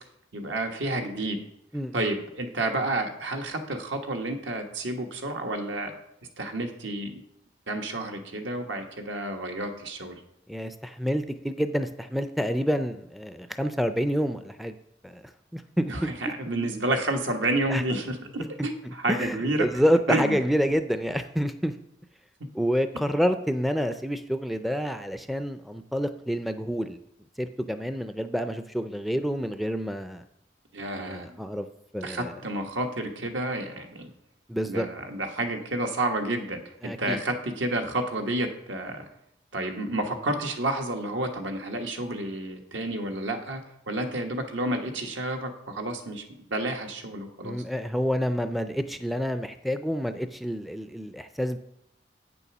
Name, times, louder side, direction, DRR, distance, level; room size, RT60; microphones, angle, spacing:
voice 1, 0.3-1.4 1.9-5.9 6.4-7.2 7.7-10.2 15.9-19.7 20.1-20.4 30.7-31.3 32.0-34.1 34.7-36.6 37.0-39.0 39.5-43.6 43.9-46.2 46.5-47.6, right 1 dB, 85° right, 4 dB, 1.4 m, -30 dB
voice 2, 1.7-2.1 10.5-14.8 15.0-15.2 15.5-16.1 17.7-17.8 18.6-21.7 22.5-27.0 27.4-30.2 31.0-31.7 31.9-32.4 34.5-34.9 36.8-37.2 47.4-51.6, equal, ahead, 9 dB, 0.3 m, -28 dB
8.6 x 6.9 x 6.0 m, 0.77 s
head